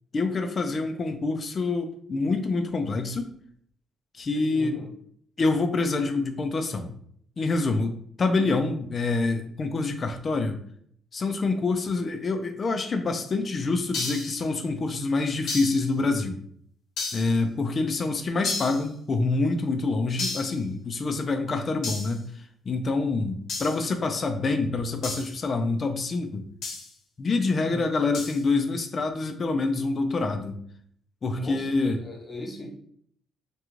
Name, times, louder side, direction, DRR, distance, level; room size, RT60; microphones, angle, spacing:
voice 1, 0.1-3.3 4.1-4.8 5.4-7.0 7.4-10.6 11.1-16.4 17.1-26.5 27.2-30.6 31.2-32.0, left 3 dB, 40° left, 6 dB, 0.3 m, -26 dB
voice 2, 4.5-4.9 27.7-27.8 31.3-32.7, equal, 20° left, -3 dB, 0.7 m, -38 dB
sound 1, 13.9-14.4 15.5-15.9 17.0-17.4 18.4-18.9 20.2-20.6 21.8-22.2 23.5-23.8 25.0-25.3 26.6-26.9 28.1-28.4, left 3 dB, 75° left, 0.7 m, -32 dB
2.4 x 2.2 x 3.0 m, 0.63 s
cardioid pair, 90°, 0 cm